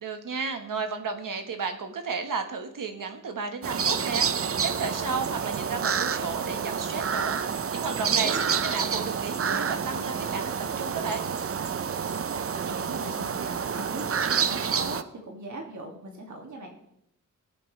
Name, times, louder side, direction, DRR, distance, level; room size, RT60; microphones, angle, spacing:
voice 1, 0.0-7.4 7.7-11.2, right 4 dB, 80° right, 6 dB, 1.5 m, -33 dB
sound 1, 3.6-15.0, right 6 dB, 45° right, 0.6 m, -28 dB
voice 2, 8.1-8.5 12.3-16.7, right 2 dB, 65° right, 0 dB, 2.3 m, -39 dB
20.5 x 7.7 x 3.3 m, 0.75 s
wide cardioid pair, 125°, 32 cm